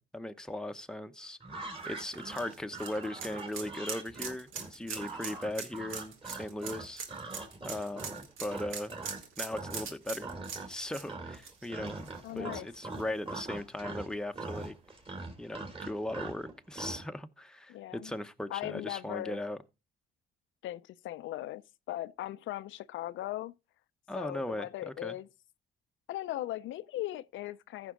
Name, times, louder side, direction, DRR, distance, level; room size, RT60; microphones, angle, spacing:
voice 1, 0.0-1.4 1.9-7.0 7.6-8.9 9.4-10.3 10.7-14.7 15.4-19.6 24.1-25.2, left 1 dB, 5° left, 0.8 m, -38 dB
sound 1, 1.4-9.2 9.5-9.9 10.2-10.8 11.1-17.0, right 3 dB, 25° right, 3.2 m, -42 dB
sound 2, 1.8-12.5 12.9-13.0 14.5-14.6, right 6 dB, 85° right, 1.8 m, -42 dB
voice 2, 12.2-12.7 17.7-18.1 18.5-19.4 20.6-21.6 21.9-23.5 24.1-25.3 26.1-27.9, left 14 dB, 75° left, 0.5 m, -38 dB
14.5 x 6.0 x 3.7 m
cardioid pair, 90°, 20 cm